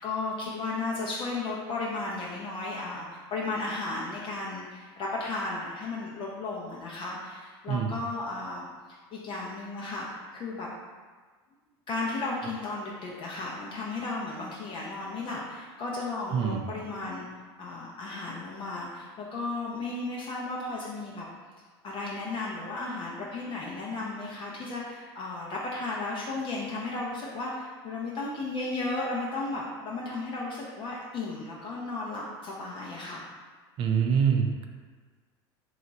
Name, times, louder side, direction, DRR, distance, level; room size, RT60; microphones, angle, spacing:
voice 1, 0.0-8.7 9.1-10.7 11.9-17.3 17.6-21.2 21.8-33.2, left 3 dB, 40° left, -4 dB, 0.5 m, -34 dB
voice 2, 33.8-34.6, right 7 dB, 45° right, 4 dB, 0.4 m, -25 dB
2.9 x 2.3 x 3.9 m, 1.5 s
hypercardioid pair, 90°, 13 cm